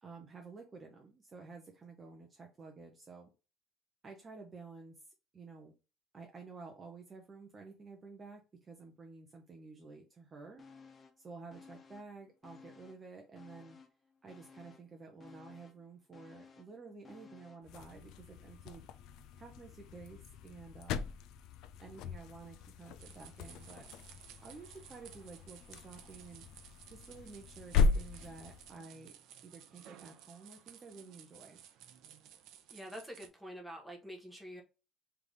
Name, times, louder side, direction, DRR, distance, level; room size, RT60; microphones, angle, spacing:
voice 1, 0.0-3.3 4.0-5.1 5.3-5.7 6.1-10.6 11.2-13.8 14.2-18.9 19.4-21.1 21.8-23.9 24.4-26.5 26.9-29.1 29.4-31.6, right 4 dB, 20° right, 0.6 m, -52 dB
sound 1, 10.6-11.2 11.5-13.1 13.4-17.7 18.1-18.2, left 4 dB, 25° left, 0.6 m, -57 dB
sound 2, 17.6-28.8, left 5 dB, 65° left, 0.4 m, -38 dB
sound 3, 23.0-33.3, right 10 dB, 65° right, 0.6 m, -56 dB
voice 2, 32.7-34.6, equal, ahead, 1.0 m, -46 dB
3.4 x 3.3 x 3.9 m
cardioid pair, 170°, 0 cm